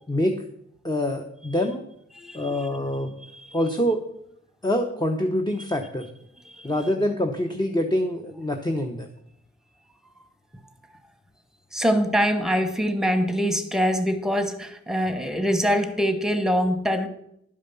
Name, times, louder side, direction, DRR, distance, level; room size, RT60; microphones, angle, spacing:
voice 1, 0.8-1.8 2.3-3.1 3.5-4.0 4.6-6.1 6.6-9.1, left 1 dB, 15° left, 0.9 m, -25 dB
voice 2, 2.1-2.7 3.2-3.6 6.4-6.7 11.7-17.1, equal, ahead, 1.2 m, -24 dB
11.0 x 5.0 x 6.9 m
cardioid pair, 70°, 29 cm